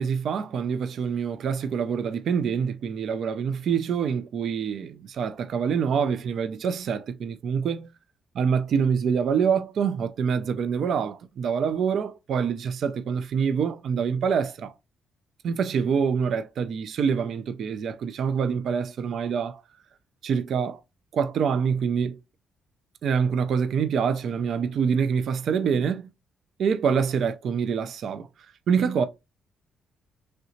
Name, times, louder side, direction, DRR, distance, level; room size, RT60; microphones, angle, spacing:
voice 1, 0.0-7.9 8.4-14.7 15.4-19.6 20.2-20.8 21.1-22.2 23.0-26.1 26.6-28.3 28.7-29.0, right 6 dB, 65° right, 0.4 m, -26 dB
3.2 x 2.8 x 2.6 m
cardioid pair, 90°, 0 cm